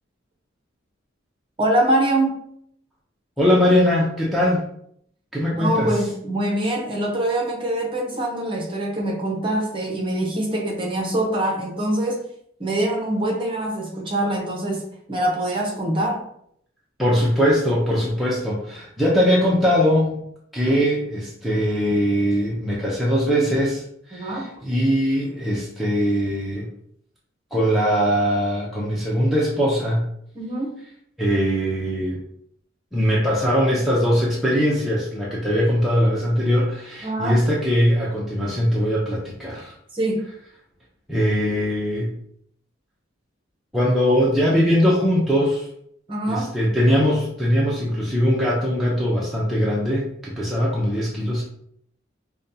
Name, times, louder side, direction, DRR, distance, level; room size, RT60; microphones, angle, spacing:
voice 1, 1.6-2.4 5.5-12.2 12.6-16.2 24.1-24.5 30.3-30.8 37.0-37.4 39.9-40.3 46.1-46.5, right 1 dB, 25° right, -1 dB, 0.8 m, -24 dB
voice 2, 3.4-4.7 5.3-6.0 17.0-20.2 20.5-26.7 27.5-30.1 31.2-32.2 32.9-39.7 41.1-42.1 43.7-45.7 46.3-51.4, equal, ahead, -6 dB, 0.5 m, -21 dB
5.1 x 2.2 x 2.7 m, 0.68 s
head